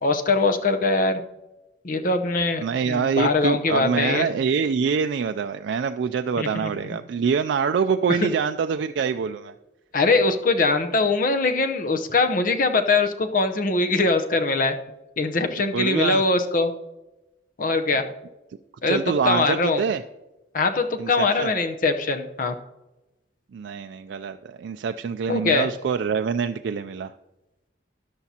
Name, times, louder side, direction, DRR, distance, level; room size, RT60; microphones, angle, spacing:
voice 1, 0.0-1.2 1.8-4.3 6.4-6.7 9.9-14.7 15.2-16.7 17.6-18.0 18.8-19.8 20.5-22.6 25.3-25.7, left 3 dB, 50° left, 6 dB, 0.8 m, -22 dB
voice 2, 2.6-9.5 15.7-16.2 18.9-20.0 21.0-21.5 23.5-27.1, right 6 dB, 75° right, 7 dB, 0.3 m, -25 dB
13.0 x 10.5 x 2.8 m, 1.0 s
head